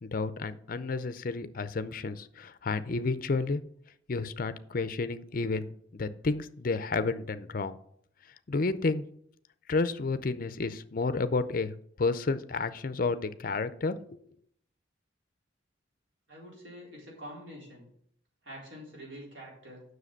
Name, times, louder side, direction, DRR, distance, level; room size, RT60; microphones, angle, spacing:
voice 1, 0.0-3.6 4.1-7.8 8.5-9.0 9.7-11.7 12.0-14.2, left 3 dB, 45° left, 13 dB, 0.5 m, -31 dB
voice 2, 16.3-17.9 18.4-19.8, equal, 70° right, -4 dB, 4.2 m, -46 dB
7.5 x 6.3 x 6.5 m, 0.67 s
head